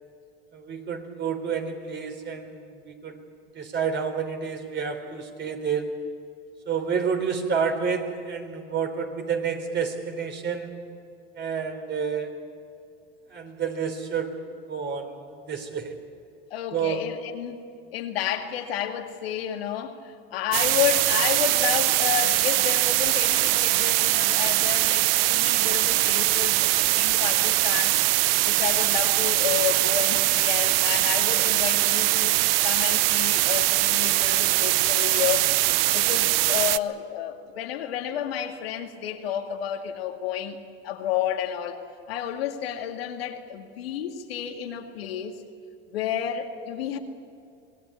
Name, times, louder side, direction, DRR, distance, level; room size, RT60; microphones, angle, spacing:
voice 1, 0.5-3.2 3.5-6.0 6.7-10.8 11.4-12.3 13.3-14.4 14.7-16.0 16.7-17.1, right 6 dB, 35° right, 3.8 m, -29 dB
voice 2, 16.5-17.6 17.9-20.0 20.3-28.0 28.4-35.5 35.9-40.6 40.8-41.8 42.1-45.4 45.9-47.0, left 10 dB, 85° left, 2.2 m, -31 dB
sound 1, 20.5-36.8, right 18 dB, 75° right, 0.7 m, -22 dB
25.5 x 19.0 x 8.6 m
hypercardioid pair, 95°, 29 cm